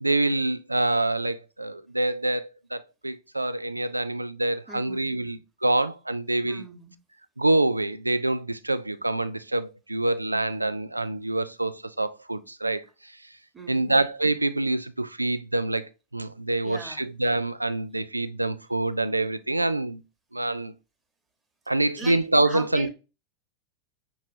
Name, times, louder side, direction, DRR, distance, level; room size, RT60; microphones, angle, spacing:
voice 1, 0.0-6.6 7.4-13.1 13.7-20.0 20.3-20.7 21.7-22.9, right 2 dB, 85° right, 0.3 m, -26 dB
voice 2, 4.7-5.2 6.4-6.9 13.5-14.0 16.6-17.1 22.0-22.9, right 4 dB, 15° right, 1.2 m, -39 dB
6.1 x 3.0 x 2.6 m
figure-of-eight pair, 90°, 0 cm